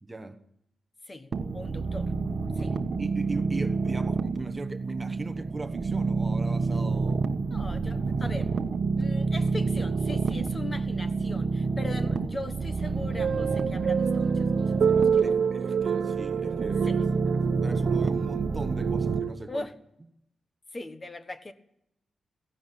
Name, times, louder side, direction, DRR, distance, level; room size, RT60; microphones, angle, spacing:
voice 1, 0.0-0.4 1.7-2.0 2.7-7.2 11.8-11.9 15.2-17.0 17.3-19.7, right 2 dB, 15° right, 1.2 m, -39 dB
voice 2, 1.1-2.1 2.6-2.8 7.5-8.5 9.0-15.3 16.8-17.0 19.5-19.7 20.7-21.5, left 2 dB, 20° left, 1.4 m, -40 dB
sound 1, 1.3-19.2, right 4 dB, 45° right, 1.3 m, -28 dB
sound 2, 12.8-19.3, right 7 dB, 65° right, 1.0 m, -28 dB
17.0 x 16.0 x 10.0 m
wide cardioid pair, 175°, 0 cm